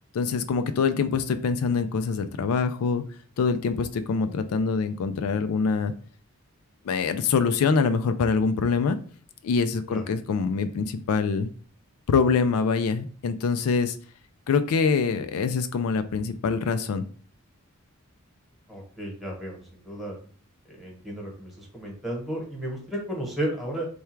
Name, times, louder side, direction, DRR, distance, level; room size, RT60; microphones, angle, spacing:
voice 1, 0.1-3.0 3.4-5.9 6.8-9.0 9.4-11.5 12.1-14.0 14.5-17.0, left 5 dB, 80° left, 10 dB, 0.4 m, -24 dB
voice 2, 18.7-20.2 20.7-23.9, right 1 dB, ahead, -1 dB, 1.0 m, -33 dB
3.4 x 2.3 x 4.4 m, 0.43 s
head